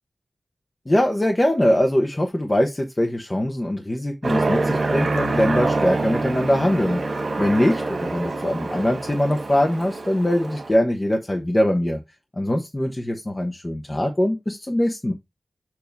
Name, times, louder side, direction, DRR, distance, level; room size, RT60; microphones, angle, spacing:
voice 1, 0.9-7.0 7.4-12.0 12.4-15.1, left 1 dB, 25° left, 1.1 m, -22 dB
Aircraft, 4.2-10.7, right 3 dB, 75° right, 1.7 m, -26 dB
7.2 x 2.9 x 5.3 m
wide cardioid pair, 70°, 0 cm